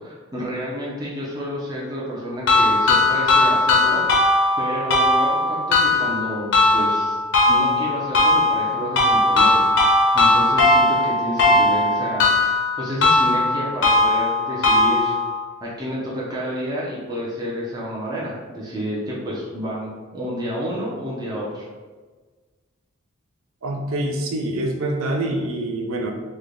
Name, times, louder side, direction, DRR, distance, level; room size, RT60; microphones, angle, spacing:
voice 1, 0.0-4.3 4.6-7.2 7.5-12.3 12.8-15.1 15.6-21.7, equal, 20° right, -6 dB, 0.5 m, -30 dB
sound 1, 2.5-15.4, left 2 dB, 55° left, 0.6 m, -18 dB
voice 2, 23.6-26.1, right 1 dB, 75° right, 3 dB, 0.5 m, -25 dB
3.2 x 2.2 x 3.7 m, 1.4 s
head